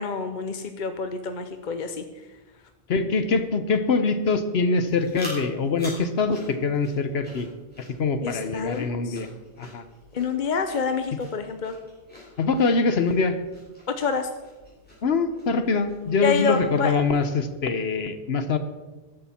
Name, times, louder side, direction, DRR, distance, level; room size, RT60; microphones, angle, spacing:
voice 1, 0.0-2.0 8.2-9.2 10.1-11.8 13.9-14.3 16.2-16.9, left 5 dB, 50° left, 8 dB, 0.8 m, -27 dB
voice 2, 2.9-7.5 7.8-9.3 9.6-9.8 12.4-13.4 15.0-18.6, left 4 dB, 70° left, 10 dB, 1.1 m, -24 dB
sound 1, 4.8-17.6, equal, 10° left, 5.5 m, -46 dB
14.5 x 11.5 x 4.4 m, 1.2 s
omnidirectional pair, 1.1 m